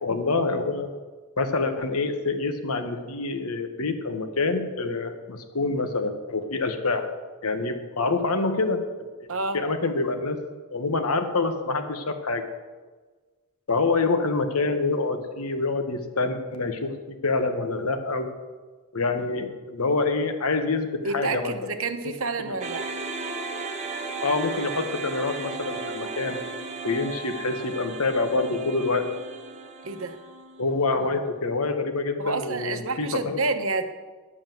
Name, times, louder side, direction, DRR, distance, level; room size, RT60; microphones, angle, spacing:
voice 1, 0.0-1.0 1.4-7.1 7.4-9.1 9.5-10.4 10.7-12.5 13.7-18.3 18.9-21.7 22.0-22.1 22.4-22.5 24.2-26.4 26.8-29.1 30.6-33.4, left 3 dB, 75° left, 7 dB, 1.3 m, -26 dB
voice 2, 21.0-22.8 29.8-30.1 32.2-33.9, right 3 dB, 65° right, 8 dB, 1.0 m, -29 dB
sound 1, 22.6-30.9, right 3 dB, 30° right, 0.9 m, -35 dB
11.0 x 7.5 x 7.7 m, 1.4 s
head